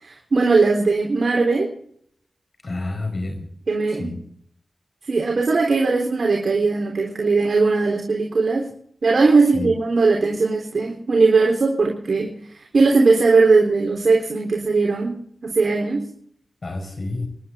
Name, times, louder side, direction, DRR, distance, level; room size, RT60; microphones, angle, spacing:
voice 1, 0.0-1.7 3.7-4.1 5.1-8.7 9.0-15.2 15.4-16.1, right 3 dB, 70° right, -1 dB, 3.7 m, -19 dB
voice 2, 2.6-3.5 3.9-4.2 9.5-9.7 16.6-17.3, left 2 dB, 50° left, 5 dB, 5.0 m, -29 dB
28.5 x 11.5 x 3.7 m, 0.65 s
wide cardioid pair, 70°, 0 cm